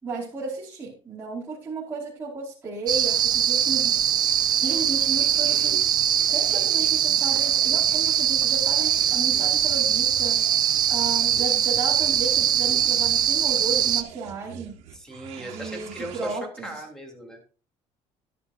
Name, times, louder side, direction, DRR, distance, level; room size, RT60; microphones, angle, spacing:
voice 1, 0.0-4.0 4.6-5.9 6.3-14.8 15.4-16.8, right 3 dB, 15° right, -9 dB, 5.0 m, -34 dB
sound 1, 2.9-14.0, right 10 dB, 35° right, 0.8 m, -22 dB
sound 2, 4.6-16.3, right 9 dB, 70° right, 2.0 m, -45 dB
voice 2, 14.9-17.4, right 1 dB, 5° left, 2 dB, 3.2 m, -37 dB
13.5 x 11.5 x 2.7 m, 0.34 s
cardioid pair, 165°, 11 cm